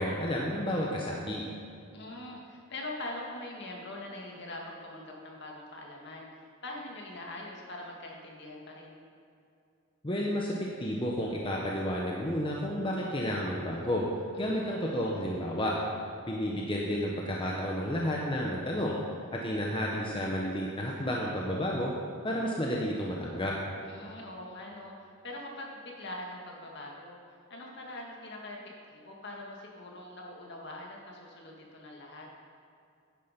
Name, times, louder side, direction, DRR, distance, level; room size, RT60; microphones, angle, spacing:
voice 1, 0.0-1.4 10.0-14.0 14.4-15.8 16.3-19.0 19.3-21.9 22.2-23.5, equal, 25° left, -2 dB, 1.0 m, -31 dB
voice 2, 1.9-6.3 6.6-9.0 14.4-14.8 23.8-27.2 27.5-28.6 28.9-32.3, left 1 dB, 55° left, -1 dB, 2.0 m, -43 dB
10.5 x 9.7 x 5.3 m, 2.5 s
head